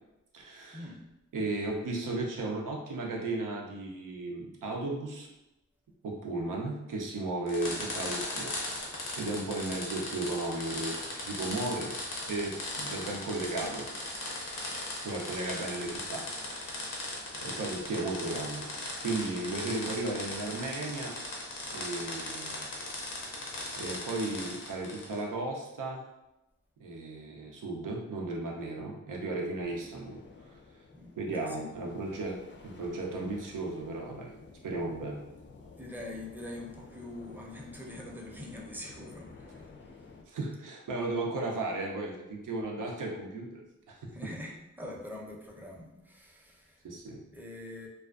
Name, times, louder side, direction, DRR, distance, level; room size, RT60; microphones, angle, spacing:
voice 1, 0.3-0.9 1.3-5.3 6.0-11.9 12.3-13.9 15.0-16.9 17.4-18.7 19.0-21.2 21.7-22.7 23.8-26.0 26.8-30.2 31.2-34.3 34.6-35.2 40.3-43.6 43.9-44.1 46.8-47.2, right 2 dB, 85° right, 0 dB, 0.5 m, -35 dB
sound 1, 7.5-25.2, left 2 dB, 85° left, 0.7 m, -38 dB
sound 2, 29.6-40.2, left 4 dB, 40° left, 0.4 m, -52 dB
voice 2, 30.9-31.8 35.8-39.7 44.1-46.8 47.3-47.9, left 1 dB, 5° right, -2 dB, 0.6 m, -44 dB
2.3 x 2.3 x 2.3 m, 0.95 s
cardioid pair, 50°, 31 cm